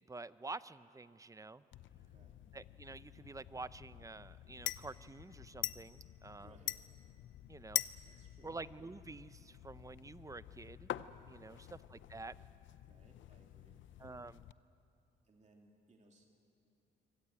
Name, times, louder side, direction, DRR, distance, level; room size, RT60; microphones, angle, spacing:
voice 1, 0.0-1.6 2.5-6.6 7.5-7.8 8.4-10.9 11.3-11.6 11.9-12.4 14.0-14.4, right 3 dB, 15° right, 16 dB, 0.6 m, -48 dB
sound 1, 1.7-14.5, left 12 dB, 75° left, 0.6 m, -46 dB
voice 2, 1.9-2.4 6.4-6.9 8.0-8.6 11.4-11.7 12.8-14.0 15.2-16.3, right 2 dB, 35° right, 1 dB, 2.7 m, -66 dB
24.5 x 18.0 x 8.9 m, 2.8 s
cardioid pair, 90°, 20 cm